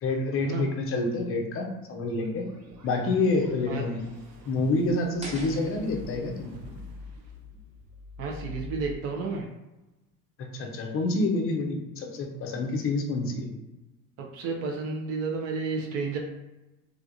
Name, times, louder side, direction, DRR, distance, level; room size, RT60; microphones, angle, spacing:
voice 1, 0.0-2.5 2.8-4.0 4.5-6.5 10.5-13.5, left 2 dB, 30° left, 2 dB, 0.6 m, -28 dB
sound 1, 2.1-8.9, left 3 dB, 90° right, 0.6 m, -45 dB
sound 2, 5.2-8.2, right 1 dB, 15° right, 0.9 m, -46 dB
voice 2, 8.2-9.5 14.2-16.2, right 4 dB, 30° right, 1 dB, 0.4 m, -31 dB
3.3 x 2.4 x 2.6 m, 1.0 s
hypercardioid pair, 75°, 49 cm